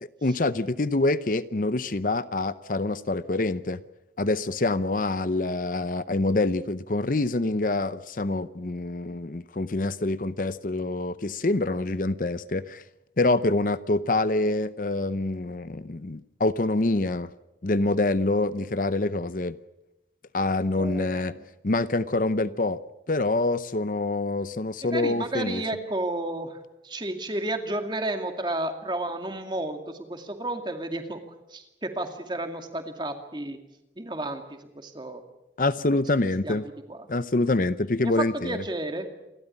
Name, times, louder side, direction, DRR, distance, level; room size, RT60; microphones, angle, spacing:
voice 1, 0.2-3.8 4.2-12.8 13.2-17.3 17.6-19.6 20.3-21.3 21.6-22.8 23.1-25.6 35.6-36.6 37.1-38.6, left 2 dB, 50° left, 14 dB, 0.7 m, -26 dB
voice 2, 20.8-21.4 24.9-31.2 31.5-33.6 34.0-35.2 36.4-36.6 36.9-37.1 38.0-39.1, right 2 dB, 25° right, 6 dB, 2.3 m, -32 dB
28.5 x 13.0 x 9.9 m, 0.95 s
head